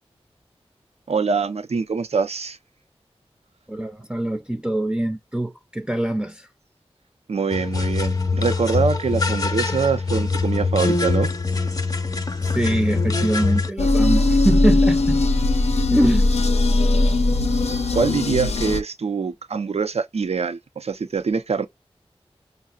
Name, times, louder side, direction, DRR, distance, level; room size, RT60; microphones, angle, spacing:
voice 1, 1.1-2.6 7.3-11.3 17.9-21.7, right 5 dB, 75° right, 0.6 m, -24 dB
voice 2, 3.7-6.5 12.4-15.2 15.9-16.3, right 1 dB, 10° right, 0.5 m, -23 dB
sound 1, 7.5-13.7, left 4 dB, 35° left, 0.7 m, -23 dB
sound 2, 13.8-18.8, left 2 dB, 85° left, 0.5 m, -19 dB
5.5 x 2.0 x 2.3 m
cardioid pair, 40°, 11 cm